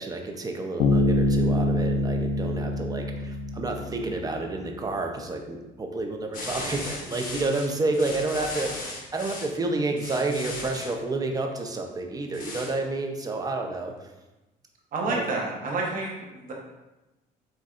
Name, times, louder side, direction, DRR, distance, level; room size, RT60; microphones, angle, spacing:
voice 1, 0.0-14.1 15.0-15.2, right 2 dB, 20° right, 3 dB, 0.7 m, -30 dB
Bass guitar, 0.8-4.4, left 2 dB, 80° left, 0.5 m, -25 dB
sound 1, 6.3-9.5 10.0-10.9 12.3-12.7, left 2 dB, 55° left, 1.1 m, -37 dB
voice 2, 14.9-16.5, right 3 dB, 55° right, -1 dB, 1.1 m, -29 dB
7.7 x 2.6 x 2.5 m, 1.0 s
cardioid pair, 110°, 17 cm